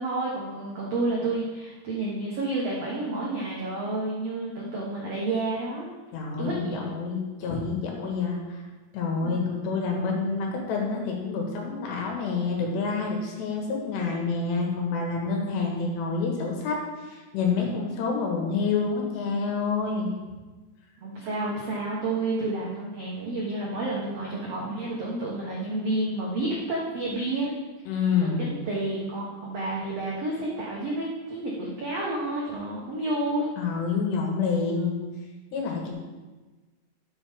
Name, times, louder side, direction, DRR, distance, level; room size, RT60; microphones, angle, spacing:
voice 1, 0.0-5.9 6.4-6.8 9.2-9.3 21.0-27.5 28.2-33.5, right 2 dB, 80° right, -4 dB, 1.4 m, -30 dB
voice 2, 6.1-8.6 8.9-16.8 17.0-20.1 27.9-28.4 33.6-35.0 35.5-35.9, left 4 dB, 85° left, 0 dB, 3.8 m, -28 dB
12.0 x 7.1 x 3.6 m, 1.3 s
omnidirectional pair, 4.8 m